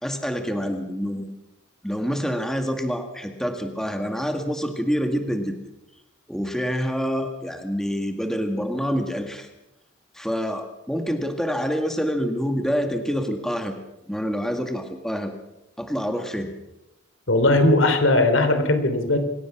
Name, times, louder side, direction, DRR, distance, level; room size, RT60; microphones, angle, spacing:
voice 1, 0.0-1.3 1.8-5.6 6.3-9.5 10.1-13.8 14.1-15.3 15.8-16.5, equal, 5° left, 5 dB, 2.0 m, -27 dB
voice 2, 17.3-19.2, left 2 dB, 75° left, 8 dB, 3.4 m, -18 dB
26.5 x 17.0 x 6.1 m, 0.90 s
head